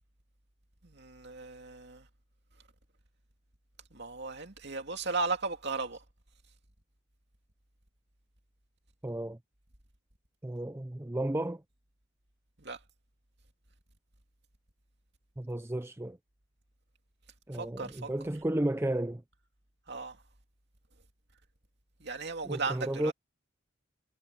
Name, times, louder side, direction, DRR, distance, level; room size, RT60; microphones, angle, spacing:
voice 1, 0.8-2.1 3.9-6.0 12.6-12.8 17.5-18.1 19.9-20.2 22.0-23.1, right 4 dB, 55° right, 2.7 m, -36 dB
voice 2, 9.0-9.4 10.4-11.6 15.4-16.2 17.5-19.2 22.4-23.1, right 1 dB, 10° right, 0.5 m, -33 dB
head